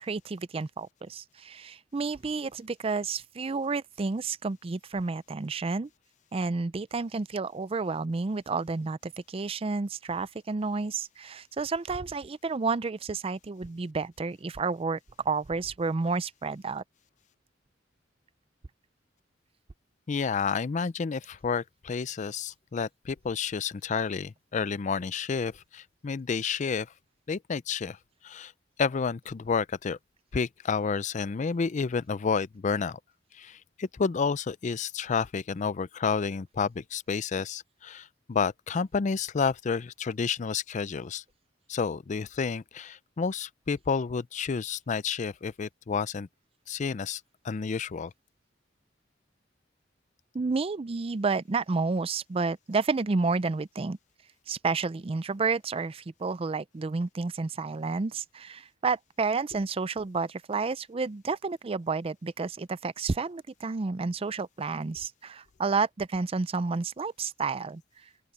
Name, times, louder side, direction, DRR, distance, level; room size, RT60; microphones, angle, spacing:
voice 1, 0.0-5.9 6.3-15.0 15.2-16.8 50.3-54.0 54.5-67.8, right 4 dB, 30° right, 0.4 m, -30 dB
voice 2, 20.1-26.9 27.3-28.0 28.2-28.5 28.8-30.0 30.3-33.0 33.3-41.2 41.7-46.3 46.7-48.1, left 5 dB, 40° left, 0.4 m, -30 dB
open air
head